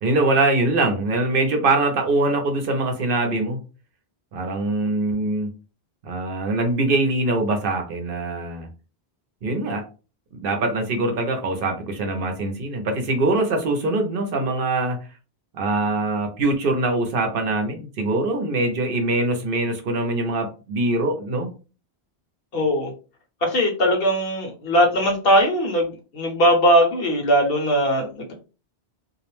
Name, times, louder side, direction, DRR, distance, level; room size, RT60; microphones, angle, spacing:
voice 1, 0.0-3.6 4.3-5.5 6.0-8.7 9.4-9.8 10.3-15.0 15.5-21.5, right 2 dB, 65° right, 4 dB, 0.7 m, -23 dB
voice 2, 22.5-22.9 23.4-28.3, equal, 65° left, 2 dB, 1.0 m, -20 dB
2.4 x 2.0 x 3.0 m, 0.33 s
omnidirectional pair, 1.1 m